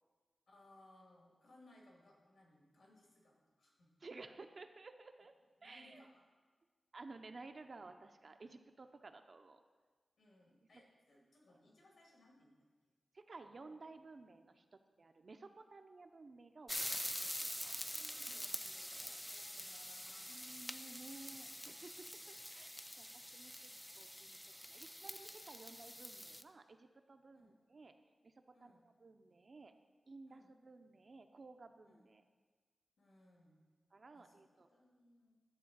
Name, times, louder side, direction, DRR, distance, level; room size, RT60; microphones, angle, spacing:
voice 1, 0.5-3.9 5.6-6.2 10.2-12.5 17.2-20.4 27.3-27.6 28.5-28.9 30.3-30.6 31.8-32.1 33.0-33.6 34.1-35.4, left 1 dB, 70° left, -2 dB, 2.4 m, -66 dB
voice 2, 4.0-5.3 5.6-6.1 6.9-9.6 13.1-17.1 17.4-17.8 20.3-21.9 22.3-23.7 24.0-24.4 24.7-27.9 28.2-28.3 28.6-28.7 29.0-29.7 30.1-32.2 33.9-34.7, right 3 dB, 45° right, 7 dB, 0.5 m, -55 dB
sound 1, 16.7-26.4, equal, 5° left, 0.3 m, -46 dB
11.0 x 3.8 x 7.2 m, 1.4 s
wide cardioid pair, 135°, 0 cm